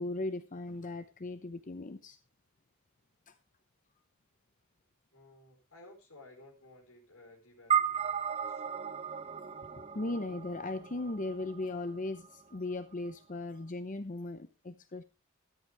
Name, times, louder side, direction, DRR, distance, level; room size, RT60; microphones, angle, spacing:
voice 1, 0.0-2.2 3.3-3.4 9.8-15.0, left 2 dB, 35° left, 10 dB, 0.7 m, -38 dB
voice 2, 5.1-8.7, left 2 dB, 65° left, 1 dB, 4.6 m, -56 dB
sound 1, 7.7-12.3, right 7 dB, 30° right, 0.7 m, -35 dB
13.5 x 13.0 x 3.4 m, 0.30 s
head